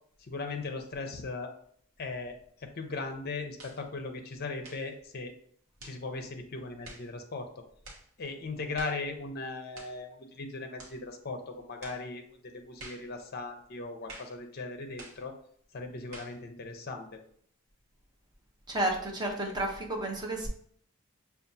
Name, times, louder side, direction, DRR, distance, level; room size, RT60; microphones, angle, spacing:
voice 1, 0.2-1.5 2.0-5.3 5.8-7.6 8.2-15.3 15.7-17.2, left 3 dB, 45° left, 5 dB, 0.5 m, -38 dB
sound 1, 3.6-3.8 4.6-4.9 5.8-6.0 6.8-7.1 7.8-8.1 8.7-9.0 9.7-10.0 10.8-11.0 11.8-12.0 12.8-13.1 14.1-14.4 15.0-15.2 16.1-16.4, right 2 dB, 65° right, 1.0 m, -48 dB
voice 2, 18.7-20.5, right 1 dB, 20° right, 0 dB, 0.6 m, -31 dB
5.6 x 2.3 x 2.6 m, 0.63 s
head